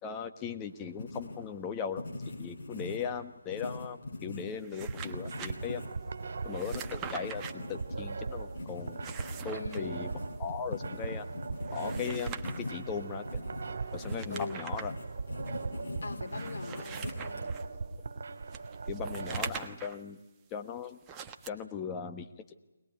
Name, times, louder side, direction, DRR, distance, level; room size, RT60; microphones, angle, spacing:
voice 1, 0.0-2.0 2.4-5.8 6.4-9.0 9.4-10.1 10.4-11.3 11.7-13.2 13.9-14.9 18.9-20.2 20.5-21.0 21.5-22.3, left 6 dB, 15° left, 7 dB, 1.4 m, -38 dB
Writing, 0.6-17.7, left 2 dB, 45° left, 7.0 m, -43 dB
sound 1, 4.5-5.5 6.5-7.5 8.8-9.8 11.6-12.7 13.9-14.9 15.5-15.6 16.3-17.6 18.5-20.0 21.0-21.5, right 7 dB, 15° right, 1.2 m, -43 dB
sound 2, 4.7-19.5, right 4 dB, 55° right, 2.7 m, -39 dB
voice 2, 9.5-10.0 14.3-14.6 16.0-17.4, left 3 dB, 60° left, 3 dB, 4.8 m, -41 dB
22.0 x 20.5 x 9.5 m, 1.1 s
figure-of-eight pair, 150°, 0 cm